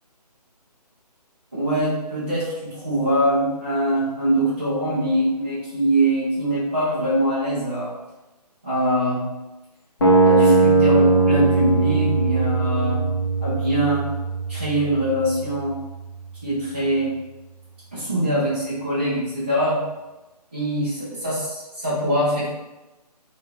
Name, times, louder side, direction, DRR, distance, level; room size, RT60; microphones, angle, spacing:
voice 1, 1.6-7.9 8.6-9.2 10.2-13.0 13.4-14.0 14.5-15.7 16.4-17.1 17.9-19.8 20.5-22.5, right 1 dB, 15° right, -11 dB, 0.4 m, -23 dB
sound 1, 10.0-16.0, right 3 dB, 35° left, 0.7 m, -20 dB
3.5 x 2.2 x 2.9 m, 1.1 s
figure-of-eight pair, 145°, 21 cm